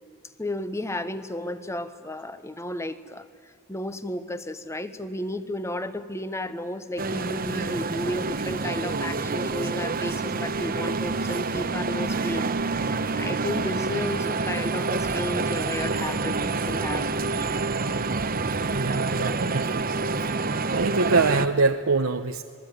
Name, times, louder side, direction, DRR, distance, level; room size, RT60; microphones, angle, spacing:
voice 1, 0.4-17.1 19.2-19.4, left 1 dB, 15° left, 12 dB, 1.1 m, -33 dB
sound 1, 7.0-21.5, right 3 dB, 45° right, 1.0 m, -27 dB
voice 2, 18.6-19.8 20.7-22.4, right 3 dB, 75° right, 5 dB, 0.9 m, -24 dB
26.5 x 21.5 x 9.3 m, 2.3 s
head